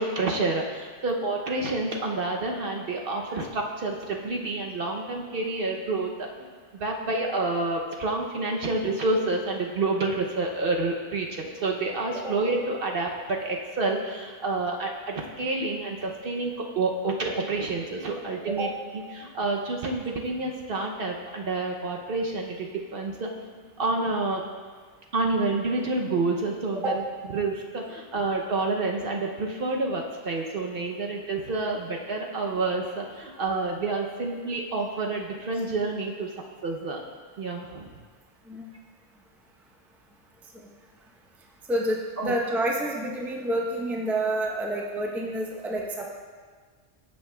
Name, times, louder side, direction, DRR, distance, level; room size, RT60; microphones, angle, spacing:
voice 1, 0.0-6.1 6.7-18.7 19.1-23.3 23.8-24.4 25.1-26.9 27.3-36.3 36.6-37.0 37.4-37.9 42.2-42.3, right 3 dB, 55° right, 1 dB, 0.8 m, -28 dB
voice 2, 41.7-46.1, right 1 dB, ahead, -1 dB, 0.6 m, -28 dB
14.0 x 5.4 x 2.2 m, 1.5 s
omnidirectional pair, 1.2 m